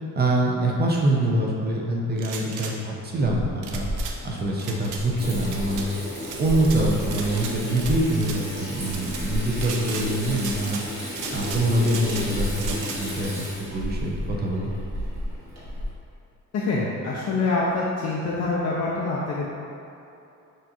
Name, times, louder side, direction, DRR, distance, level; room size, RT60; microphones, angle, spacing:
voice 1, 0.1-3.9 4.2-5.9 6.4-10.8 11.3-14.7, right 1 dB, 35° right, -2 dB, 0.5 m, -25 dB
sound 1, 2.2-2.7 3.6-4.2 4.6-5.0 5.4-5.9 6.2-6.8 7.1-8.4 8.9-9.2 9.6-10.1 10.4-10.8 11.1-12.3 12.6-13.0, right 6 dB, 80° right, 0.5 m, -36 dB
Water tap faucet / Sink (filling or washing), 3.2-15.9, left 1 dB, 60° right, 1.2 m, -32 dB
voice 2, 16.5-19.5, left 3 dB, 55° left, -5 dB, 0.5 m, -25 dB
6.2 x 2.5 x 2.9 m, 2.8 s
cardioid pair, 160°, 31 cm